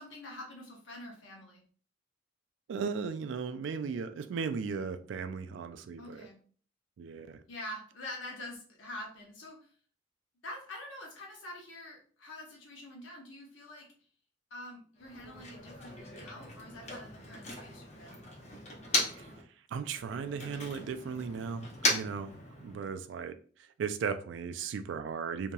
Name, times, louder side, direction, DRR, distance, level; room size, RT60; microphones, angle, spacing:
voice 1, 0.0-1.6 6.0-6.4 7.4-9.7 10.4-13.9 14.5-18.2, left 1 dB, 90° left, 0.9 m, -46 dB
voice 2, 2.7-6.3 7.0-7.4 19.0-19.3 19.7-22.3 22.6-23.4 23.8-25.5, right 5 dB, 70° right, 0.3 m, -36 dB
Motor vehicle (road), 15.0-19.4 19.7-23.0, left 2 dB, 35° left, 0.7 m, -37 dB
2.9 x 2.7 x 2.2 m
head